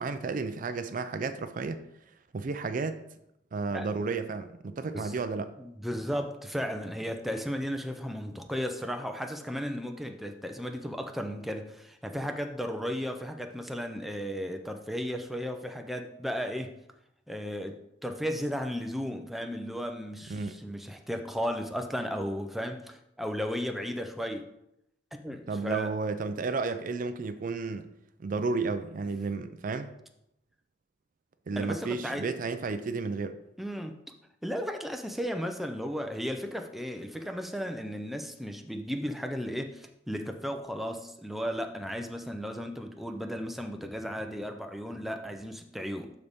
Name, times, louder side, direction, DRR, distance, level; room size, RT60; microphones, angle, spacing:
voice 1, 0.0-1.8 2.3-3.0 3.5-5.5 20.3-20.5 25.5-27.9 28.2-29.9 31.5-33.4, right 4 dB, 50° right, 10 dB, 0.4 m, -32 dB
voice 2, 5.6-16.7 17.3-24.4 25.2-25.9 31.6-32.3 33.6-33.9 34.4-46.1, equal, ahead, 4 dB, 0.6 m, -35 dB
12.0 x 4.0 x 3.6 m, 0.81 s
head